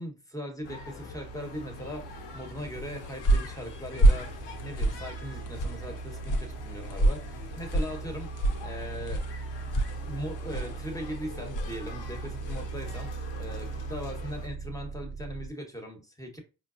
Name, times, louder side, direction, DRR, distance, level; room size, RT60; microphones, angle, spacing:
voice 1, 0.0-8.3 8.6-9.2 10.1-16.4, equal, 10° left, 1.0 m, -39 dB
sound 1, 0.6-14.5, left 4 dB, 75° left, 0.8 m, -45 dB
sound 2, 0.6-15.5, right 4 dB, 55° right, 1.0 m, -40 dB
sound 3, 2.7-12.8, right 1 dB, 45° left, 0.7 m, -29 dB
4.4 x 2.0 x 2.5 m
supercardioid pair, 55°, 44 cm